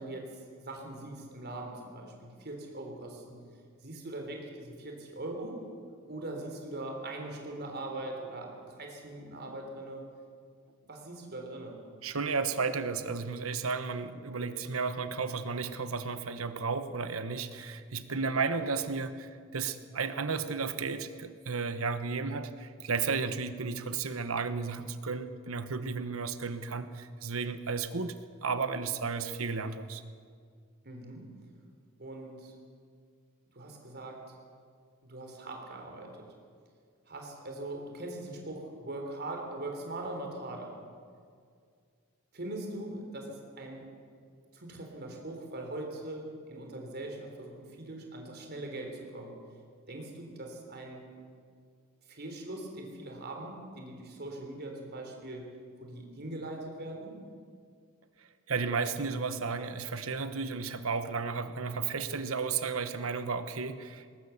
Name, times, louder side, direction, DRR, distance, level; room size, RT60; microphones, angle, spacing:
voice 1, 0.0-3.4 3.8-5.7 6.1-10.2 10.8-11.8 30.8-31.3 32.0-32.5 33.5-34.3 35.0-36.3 37.1-40.9 42.3-43.9 44.5-49.4 49.9-51.1 52.1-57.3, right 2 dB, 50° right, 2 dB, 3.9 m, -41 dB
voice 2, 12.0-28.1 28.4-30.0 58.5-64.0, right 4 dB, 80° right, 11 dB, 1.1 m, -33 dB
20.0 x 18.5 x 7.2 m, 2.2 s
head